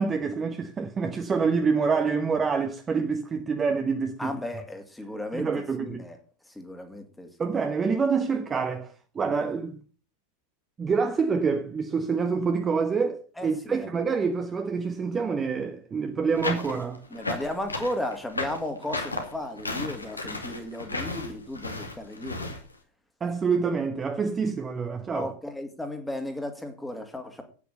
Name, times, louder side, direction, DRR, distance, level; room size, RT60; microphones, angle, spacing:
voice 1, 0.0-4.3 5.3-6.0 7.4-9.8 10.8-17.0 23.2-25.3, right 5 dB, 20° right, 1.2 m, -27 dB
voice 2, 4.2-6.2 6.5-7.3 13.4-13.9 17.1-22.5 25.1-27.4, left 1 dB, 5° left, 2.3 m, -35 dB
sound 1, 16.4-22.6, left 2 dB, 80° left, 2.4 m, -33 dB
9.2 x 8.5 x 6.7 m
figure-of-eight pair, 90°, 0 cm